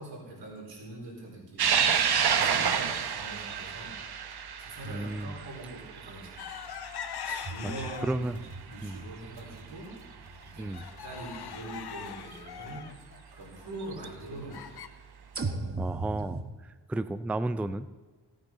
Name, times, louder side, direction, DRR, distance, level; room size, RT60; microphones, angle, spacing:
voice 1, 0.0-4.0 4.6-6.6 7.4-9.9 10.4-12.8 13.3-14.8, right 2 dB, 90° right, -4 dB, 4.4 m, -43 dB
sound 1, 1.6-8.3 8.7-8.8 10.0-10.1 12.3-12.4 13.8-14.1, right 7 dB, 65° right, 0.9 m, -29 dB
voice 2, 4.9-5.3 7.2-7.5 8.0-8.4 8.8-9.0 10.6-10.9 15.8-16.4 16.9-17.9, right 2 dB, 5° right, 13 dB, 0.4 m, -32 dB
sound 2, 6.4-8.4 8.8-9.4 9.8-9.9 10.3-14.9, left 8 dB, 65° left, 0.7 m, -41 dB
sound 3, 7.4-11.7 12.4-12.5 15.3-16.4, right 3 dB, 35° right, 1.2 m, -38 dB
17.0 x 8.8 x 3.9 m, 1.3 s
cardioid pair, 70°, 42 cm